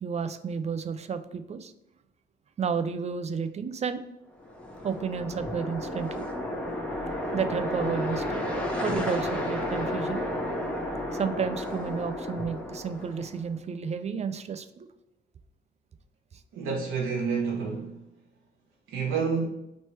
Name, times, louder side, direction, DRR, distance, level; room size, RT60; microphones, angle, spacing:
voice 1, 0.0-1.7 2.6-4.1 4.8-6.3 7.3-8.4 8.8-10.2 11.1-14.9, right 6 dB, 35° right, 10 dB, 0.4 m, -31 dB
sound 1, 4.4-13.4, left 1 dB, 5° left, 1.0 m, -32 dB
voice 2, 16.5-18.1 18.9-19.5, right 5 dB, 85° right, -1 dB, 1.1 m, -29 dB
3.2 x 3.1 x 4.3 m, 0.89 s
cardioid pair, 90°, 20 cm